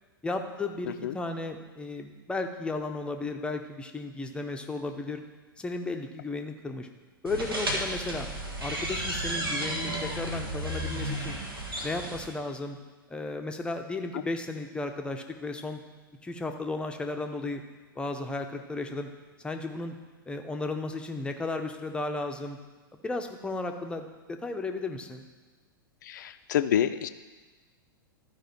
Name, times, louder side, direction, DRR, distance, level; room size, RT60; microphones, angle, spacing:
voice 1, 0.2-5.2 5.6-6.9 7.2-8.3 8.6-11.4 11.8-12.8 13.1-15.8 16.2-17.6 18.0-19.1 19.4-20.0 20.3-22.6 22.9-25.3, left 3 dB, 10° left, 5 dB, 0.7 m, -34 dB
sound 1, 7.3-12.3, right 1 dB, 75° right, 1.6 m, -33 dB
voice 2, 26.0-27.1, left 10 dB, 55° left, 11 dB, 0.5 m, -27 dB
12.5 x 4.9 x 4.4 m, 1.3 s
figure-of-eight pair, 95°, 12 cm